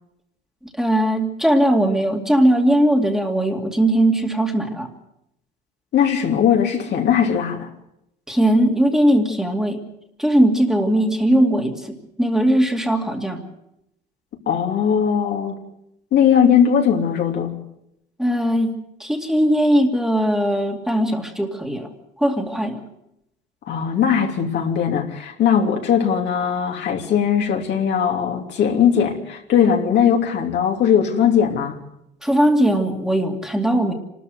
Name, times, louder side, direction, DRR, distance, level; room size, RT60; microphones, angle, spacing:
voice 1, 0.8-4.9 8.3-9.8 10.2-13.4 18.2-21.9 22.2-22.8 32.2-33.9, right 1 dB, 5° right, 2 dB, 2.5 m, -19 dB
voice 2, 5.9-7.7 14.5-15.5 16.1-17.5 23.7-31.8, left 8 dB, 65° left, 2 dB, 3.0 m, -19 dB
26.0 x 13.0 x 8.0 m, 0.81 s
cardioid pair, 105°, 19 cm